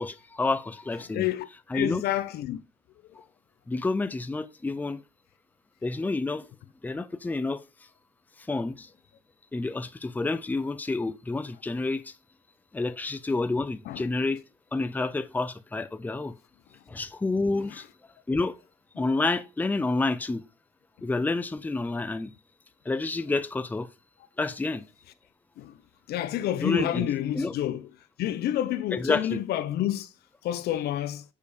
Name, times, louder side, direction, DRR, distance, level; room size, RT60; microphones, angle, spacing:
voice 1, 0.0-1.3 1.7-2.0 3.2-3.3 3.7-5.0 5.8-6.4 6.8-7.6 8.5-8.9 9.5-12.1 12.7-14.4 14.7-16.3 16.9-17.9 18.3-18.6 19.0-20.4 21.0-22.3 22.9-23.9 24.4-24.9 26.6-27.1 27.3-27.5 28.9-29.4, left 3 dB, 10° left, 0.6 m, -29 dB
voice 2, 1.1-1.5 1.7-2.6 13.9-14.1 17.7-17.8 25.6-25.8 26.1-27.9 28.2-30.1 30.4-31.2, left 12 dB, 70° left, 0.8 m, -29 dB
6.7 x 5.2 x 5.0 m
cardioid pair, 110°, 17 cm